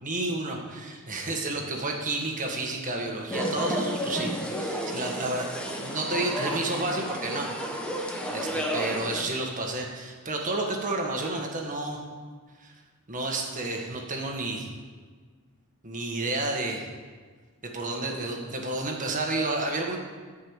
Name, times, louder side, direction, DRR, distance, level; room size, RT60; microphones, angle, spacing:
voice 1, 0.0-7.5 8.0-12.0 12.6-12.7 13.1-14.7 15.8-16.9 17.7-20.0, right 2 dB, 35° right, 1 dB, 1.7 m, -31 dB
sound 1, 3.3-9.2, equal, 5° left, 1.2 m, -32 dB
11.5 x 5.5 x 8.2 m, 1.5 s
head